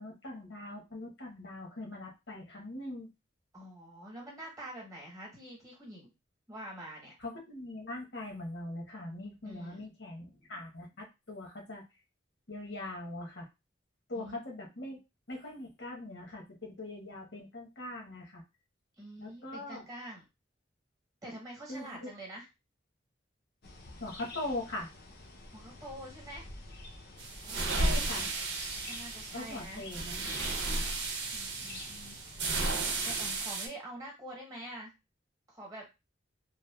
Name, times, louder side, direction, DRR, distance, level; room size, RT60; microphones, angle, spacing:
voice 1, 0.0-3.1 7.2-11.8 12.5-13.5 14.1-15.0 15.3-18.4 19.2-19.9 21.7-22.1 24.0-24.9 27.8-28.3 29.3-30.4, left 1 dB, 75° left, 0 dB, 0.9 m, -41 dB
voice 2, 3.5-6.1 6.5-7.1 9.4-9.8 14.1-14.4 19.0-20.2 21.2-22.4 25.5-26.5 27.4-28.3 28.9-29.8 31.3-32.2 33.0-34.9 35.5-35.9, right 1 dB, 20° right, -2 dB, 0.9 m, -46 dB
sound 1, 23.6-32.7, left 2 dB, 55° left, 0.5 m, -48 dB
sound 2, 27.2-33.7, right 2 dB, 70° right, 0.7 m, -34 dB
2.8 x 2.2 x 2.2 m, 0.25 s
head